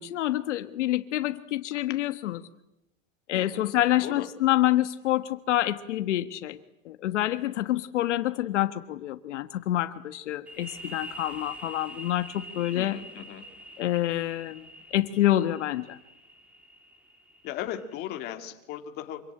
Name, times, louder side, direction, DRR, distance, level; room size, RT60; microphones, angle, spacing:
voice 1, 0.0-2.4 3.3-6.6 6.8-13.0 13.8-14.6 14.9-16.0, left 14 dB, 65° left, 10 dB, 1.5 m, -27 dB
voice 2, 3.3-3.7 4.0-4.3 12.7-13.4 17.4-19.2, left 11 dB, 25° left, 5 dB, 2.2 m, -37 dB
sound 1, 10.5-17.9, equal, 5° right, 1.9 m, -45 dB
26.5 x 24.5 x 9.0 m, 0.86 s
supercardioid pair, 175°, 39 cm